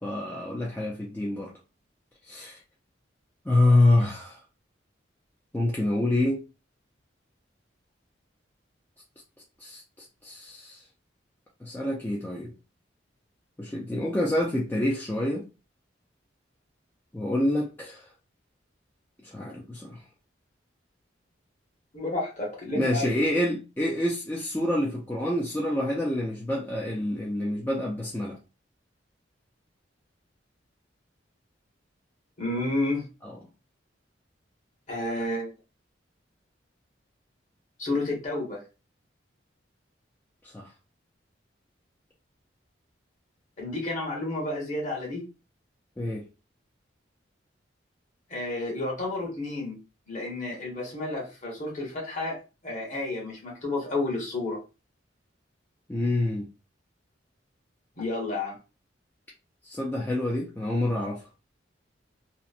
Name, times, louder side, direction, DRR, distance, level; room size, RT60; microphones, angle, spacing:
voice 1, 0.0-1.5 2.3-2.6 3.5-4.4 5.5-6.4 9.6-9.8 10.2-10.8 11.6-12.5 13.6-15.4 17.1-18.0 19.2-20.0 22.8-28.4 33.2-33.3 40.5-40.7 46.0-46.2 55.9-56.5 59.6-61.2, left 1 dB, 10° left, 0.3 m, -27 dB
voice 2, 21.9-23.2 32.4-33.0 34.9-35.5 37.8-38.6 43.6-45.3 48.3-49.8 50.1-52.4 52.6-54.6 58.0-58.6, left 2 dB, 40° left, 1.1 m, -31 dB
2.8 x 2.0 x 2.4 m
head